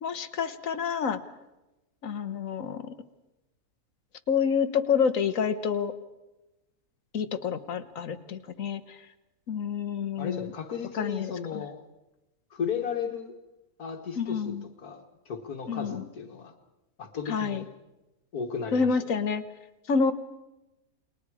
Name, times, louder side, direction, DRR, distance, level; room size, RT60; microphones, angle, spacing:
voice 1, 0.0-1.2 2.0-2.8 4.3-5.9 7.1-8.8 9.5-10.5 11.0-11.3 14.2-14.6 15.7-16.0 17.3-17.6 18.7-19.4 19.9-20.1, left 6 dB, 60° left, 10 dB, 1.5 m, -28 dB
voice 2, 10.2-11.8 12.5-13.4 13.8-16.5 17.0-17.7 18.3-18.9, left 6 dB, 80° left, 4 dB, 2.0 m, -35 dB
29.5 x 21.0 x 4.9 m, 1.0 s
omnidirectional pair, 1.6 m